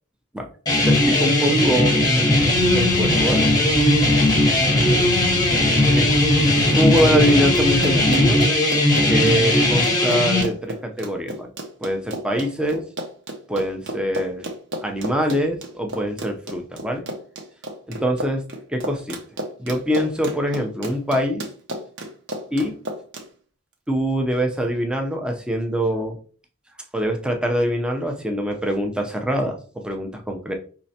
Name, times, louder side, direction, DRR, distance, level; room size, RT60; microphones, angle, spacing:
sound 1, 0.7-10.4, left 1 dB, 20° left, 0.9 m, -18 dB
voice 1, 0.9-2.0 2.7-3.5 5.9-6.2 6.7-8.4 9.1-11.5 11.8-12.8 13.5-14.5 14.8-17.1 17.9-18.4 18.7-19.2 19.6-21.4 22.5-22.8 23.9-26.2 26.9-30.5, equal, 5° right, 3 dB, 0.6 m, -24 dB
sound 2, 2.3-8.3, left 2 dB, 40° left, 0.5 m, -28 dB
Run, 6.8-23.3, right 1 dB, 55° right, 0.9 m, -32 dB
5.5 x 3.2 x 2.8 m, 0.41 s
head